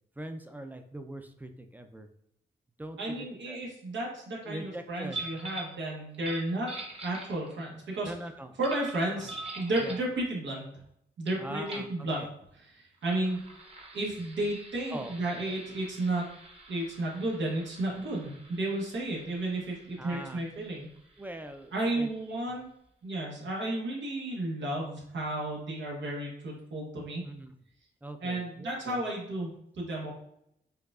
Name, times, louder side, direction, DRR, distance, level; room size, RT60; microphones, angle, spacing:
voice 1, 0.2-2.1 2.8-3.6 4.4-5.2 8.0-8.6 9.2-9.3 9.8-10.0 11.4-11.9 12.2-12.3 14.9-15.1 20.0-20.4 21.2-22.1 27.2-27.5 28.0-29.0, right 1 dB, 10° right, 7 dB, 0.4 m, -42 dB
voice 2, 3.0-6.7 7.0-8.1 8.6-10.8 11.2-12.2 12.5-13.4 13.9-16.2 16.7-20.9 21.7-22.7 23.0-27.2 28.2-30.1, right 1 dB, 85° right, -2 dB, 1.1 m, -33 dB
sound 1, 5.1-5.8 6.1-7.7 8.6-10.1 11.3-11.4 11.7-11.9 13.0-22.3, right 2 dB, 30° right, 0.9 m, -45 dB
4.7 x 2.3 x 2.4 m, 0.74 s
cardioid pair, 55°, 19 cm